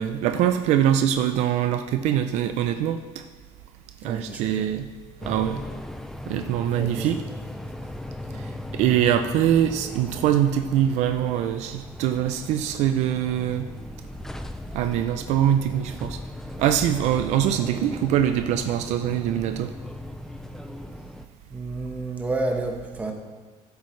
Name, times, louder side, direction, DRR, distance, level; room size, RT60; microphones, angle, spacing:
voice 1, 0.0-3.0 4.0-4.9 5.2-5.6 6.3-7.2 8.7-13.7 14.7-16.2 16.6-19.7, right 10 dB, 65° right, 8 dB, 0.5 m, -23 dB
voice 2, 4.0-4.7 6.7-7.1 21.5-23.1, right 2 dB, 10° right, 1 dB, 1.3 m, -30 dB
sound 1, 5.2-21.3, left 1 dB, 5° left, 0.4 m, -38 dB
15.0 x 8.2 x 3.2 m, 1.4 s
cardioid pair, 155°, 12 cm